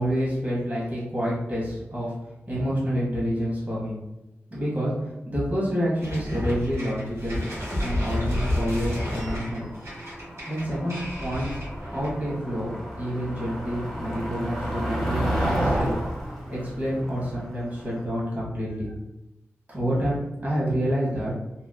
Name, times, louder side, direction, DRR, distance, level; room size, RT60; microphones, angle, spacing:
voice 1, 0.0-2.1 2.5-4.0 4.5-4.9 5.3-7.4 7.8-9.7 10.5-11.6 11.9-15.9 16.5-18.9 19.7-21.3, equal, 35° right, -7 dB, 1.0 m, -28 dB
sound 1, 6.0-12.3, left 1 dB, 70° right, 1.5 m, -30 dB
Motor vehicle (road), 7.7-18.0, right 1 dB, 5° left, 0.7 m, -32 dB
2.9 x 2.4 x 2.2 m, 0.95 s
wide cardioid pair, 95°, 5 cm